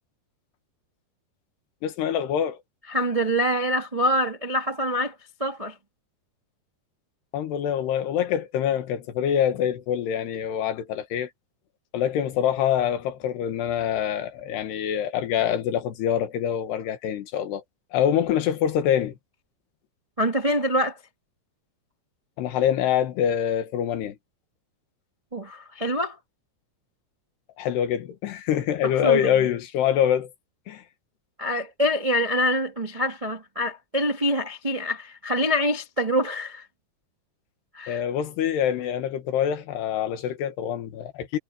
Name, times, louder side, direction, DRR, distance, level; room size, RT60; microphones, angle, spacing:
voice 1, 1.8-2.6 7.3-11.3 11.9-17.6 17.9-19.2 22.4-24.2 27.6-30.3 30.7-30.8 37.9-41.4, left 9 dB, 90° left, 3.8 m, -25 dB
voice 2, 2.9-5.8 20.2-21.0 25.3-26.2 28.8-29.5 31.4-36.7 37.7-38.0, equal, 70° right, 0.3 m, -25 dB
omnidirectional pair, 4.6 m